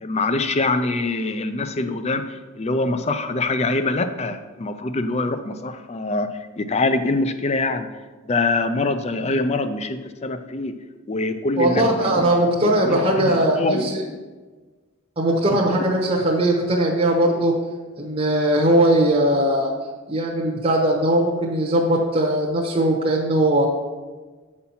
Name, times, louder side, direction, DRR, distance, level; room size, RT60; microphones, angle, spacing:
voice 1, 0.0-7.9 8.3-10.7 11.1-12.3 12.6-14.2, left 2 dB, 30° left, 10 dB, 0.4 m, -24 dB
voice 2, 11.6-14.0 15.2-17.5 18.0-19.7 20.1-23.7, right 1 dB, 25° right, -2 dB, 0.9 m, -19 dB
8.3 x 4.3 x 5.6 m, 1.3 s
head